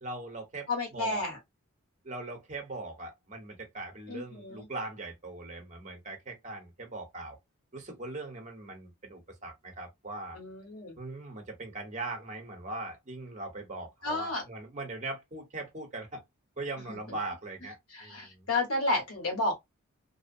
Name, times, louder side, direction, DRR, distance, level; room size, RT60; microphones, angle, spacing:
voice 1, 0.0-1.2 2.0-7.4 7.7-10.4 11.0-16.2 16.6-18.5, right 2 dB, 35° right, 0.9 m, -40 dB
voice 2, 0.7-1.4 4.1-4.7 10.3-10.9 14.0-14.4 16.9-17.2 17.9-19.5, left 2 dB, 80° left, 1.4 m, -32 dB
2.7 x 2.0 x 2.6 m
head